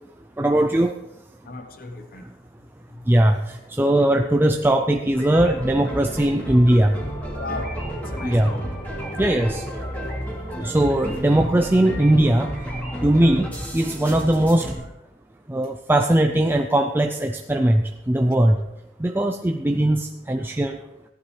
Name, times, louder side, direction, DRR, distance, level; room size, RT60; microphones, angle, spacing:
voice 1, 0.4-0.9 3.1-7.0 8.2-8.6 9.2-9.7 10.6-12.5 13.0-14.8 15.5-18.6 19.0-20.8, right 1 dB, 10° right, 0.4 m, -20 dB
voice 2, 1.4-2.3 2.9-3.1 7.3-8.7, left 2 dB, 55° left, 0.9 m, -36 dB
sound 1, 5.1-14.7, equal, 10° left, 2.9 m, -32 dB
15.0 x 11.0 x 3.2 m
head